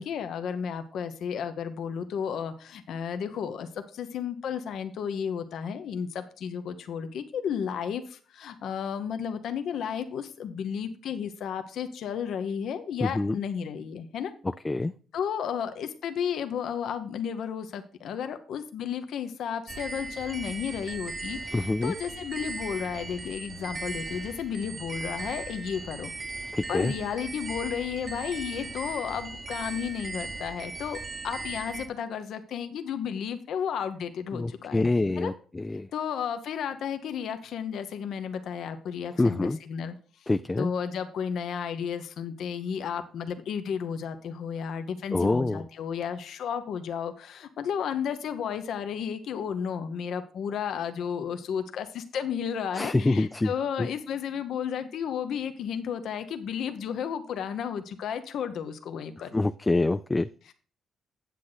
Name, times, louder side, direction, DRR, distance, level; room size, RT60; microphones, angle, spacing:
voice 1, 0.0-14.3 15.1-26.1 26.7-31.0 31.2-34.8 35.2-35.3 35.9-39.9 40.2-40.3 40.6-59.3, left 7 dB, 70° left, 8 dB, 0.8 m, -33 dB
voice 2, 13.0-13.4 14.6-14.9 21.5-21.9 26.5-26.9 34.3-35.9 39.2-39.6 40.3-40.7 45.1-45.6 52.7-53.5 53.8-53.9 59.3-60.3, left 2 dB, 20° left, 11 dB, 0.3 m, -26 dB
sound 1, 19.7-31.9, right 3 dB, 35° right, 1.0 m, -38 dB
8.4 x 7.6 x 3.9 m, 0.41 s
cardioid pair, 90°, 0 cm